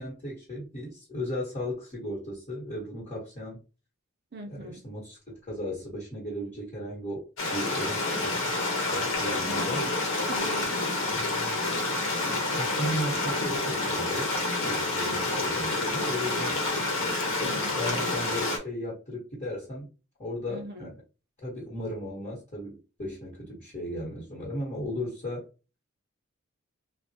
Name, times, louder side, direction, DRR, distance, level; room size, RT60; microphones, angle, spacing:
voice 1, 0.0-3.6 4.5-8.4 8.9-9.9 11.1-11.6 12.6-14.3 14.7-16.6 17.4-19.9 20.2-20.9 21.4-25.5, equal, 35° left, 1.0 m, -36 dB
voice 2, 4.3-4.8 9.4-9.9 10.3-10.8 15.0-15.2 17.4-17.9 20.5-20.9, right 2 dB, 50° right, 0.6 m, -42 dB
Stream, 7.4-18.6, left 2 dB, 85° left, 0.9 m, -28 dB
3.4 x 2.0 x 2.7 m
head